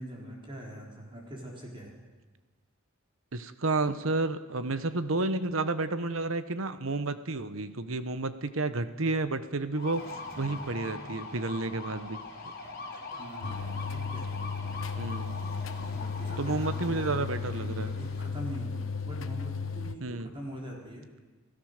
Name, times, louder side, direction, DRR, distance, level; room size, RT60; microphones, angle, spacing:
voice 1, 0.0-1.9 13.2-14.3 15.8-18.7 19.0-21.1, equal, 25° right, -1 dB, 4.1 m, -43 dB
voice 2, 3.3-10.0 10.4-12.2 15.0-15.5 16.4-17.9 20.0-20.3, right 3 dB, 75° right, 12 dB, 1.1 m, -31 dB
sound 1, 9.7-18.2, left 3 dB, 45° left, 3.9 m, -42 dB
sound 2, 13.4-20.0, left 5 dB, 70° left, 1.1 m, -35 dB
28.5 x 16.0 x 6.7 m, 1.3 s
head